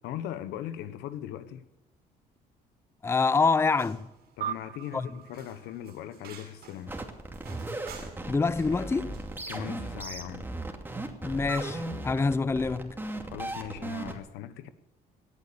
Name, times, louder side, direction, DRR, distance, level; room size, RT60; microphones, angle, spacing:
voice 1, 0.0-1.6 4.4-7.0 9.5-10.5 13.3-14.7, left 11 dB, 90° left, 1.2 m, -39 dB
voice 2, 3.0-4.1 4.9-5.1 8.3-9.2 11.2-13.0, left 4 dB, 15° left, 0.5 m, -26 dB
sound 1, 3.6-9.7, right 6 dB, 75° right, 6.1 m, -52 dB
sound 2, 4.4-7.1, right 10 dB, 60° right, 0.6 m, -41 dB
sound 3, 6.9-14.1, right 2 dB, 10° right, 2.4 m, -37 dB
18.5 x 11.5 x 6.9 m
cardioid pair, 110°, 17 cm